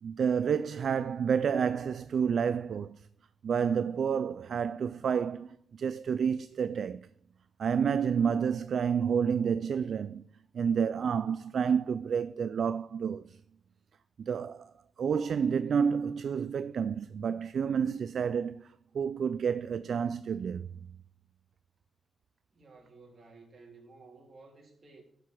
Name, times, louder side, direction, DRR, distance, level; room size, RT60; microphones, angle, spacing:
voice 1, 0.0-3.1 3.4-7.0 7.6-10.2 10.5-13.4 14.2-14.7 15.0-20.7, right 7 dB, 60° right, 0.3 m, -29 dB
voice 2, 22.5-25.0, right 3 dB, 35° right, 3.4 m, -54 dB
10.5 x 4.8 x 7.7 m
cardioid pair, 125°, 0 cm